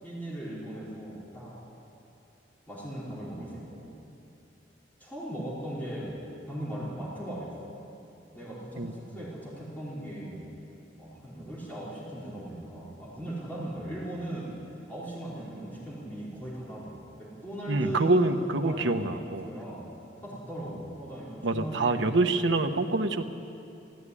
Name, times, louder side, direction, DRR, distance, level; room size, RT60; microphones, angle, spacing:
voice 1, 0.0-1.6 2.7-3.9 5.0-6.2 6.5-7.5 8.3-10.5 11.0-14.6 14.9-19.9 20.2-22.1, right 1 dB, 10° left, -7 dB, 4.7 m, -38 dB
voice 2, 8.8-9.2 17.7-19.5 21.4-23.2, right 2 dB, 90° right, 5 dB, 1.1 m, -26 dB
18.0 x 15.5 x 9.9 m, 2.7 s
head